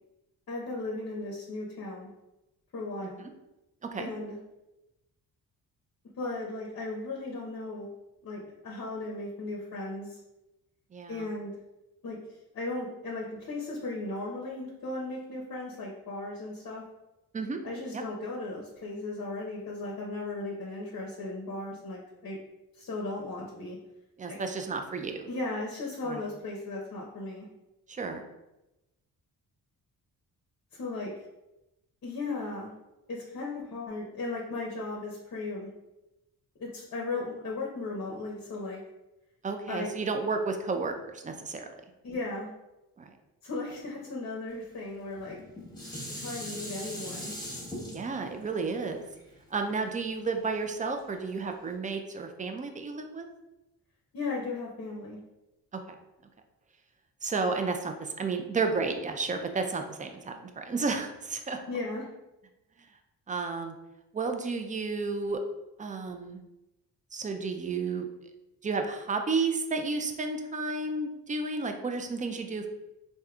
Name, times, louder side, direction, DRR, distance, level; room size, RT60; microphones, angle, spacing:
voice 1, 0.5-2.1 2.7-3.2 4.0-4.4 6.2-7.9 8.2-10.2 11.1-11.5 12.0-12.2 12.5-16.8 17.6-22.4 22.8-23.8 24.3-24.4 25.3-27.5 30.7-31.1 32.0-32.7 33.1-35.7 36.6-38.8 39.7-39.9 42.0-42.5 43.4-45.4 46.1-47.3 54.1-55.2 61.7-62.1, left 2 dB, 45° left, -2 dB, 0.7 m, -36 dB
voice 2, 10.9-11.3 17.3-17.6 17.9-18.0 24.2-25.3 26.1-26.2 27.9-28.2 39.4-41.7 43.0-43.1 47.9-49.0 49.5-53.3 55.7-55.9 57.2-61.6 63.3-63.7 64.1-65.4 65.8-66.4 67.1-68.1 68.6-72.7, right 4 dB, 20° right, 5 dB, 0.3 m, -32 dB
Dishes pots and pans, 45.2-50.4 51.0-51.1, equal, 10° left, 1.1 m, -41 dB
3.4 x 2.6 x 2.3 m, 0.96 s
cardioid pair, 75°, 39 cm